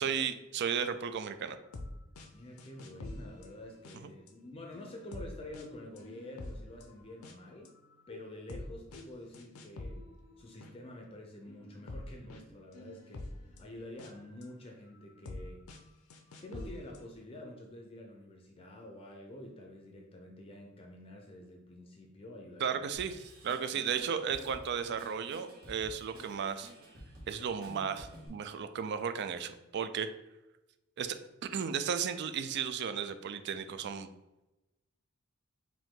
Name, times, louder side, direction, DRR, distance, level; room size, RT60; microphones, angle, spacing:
voice 1, 0.0-1.6 4.0-4.1 22.6-26.7 27.3-30.1 31.0-31.2 31.5-34.1, right 7 dB, 55° right, 10 dB, 0.4 m, -34 dB
sound 1, 1.6-1.9 2.2-2.3 2.6-4.3 4.7-7.3 7.7-10.7 11.5-14.5 15.0-15.4 15.7-15.8 16.1-17.1, left 2 dB, 80° left, 0.6 m, -46 dB
voice 2, 2.3-7.7 8.1-10.0 10.4-15.7 16.4-22.9 23.7-23.8, left 1 dB, 25° left, 1 dB, 0.5 m, -48 dB
Drum kit / Drum, 22.9-28.3, right 1 dB, 80° right, 1.5 m, -52 dB
5.0 x 2.7 x 3.7 m, 0.98 s
head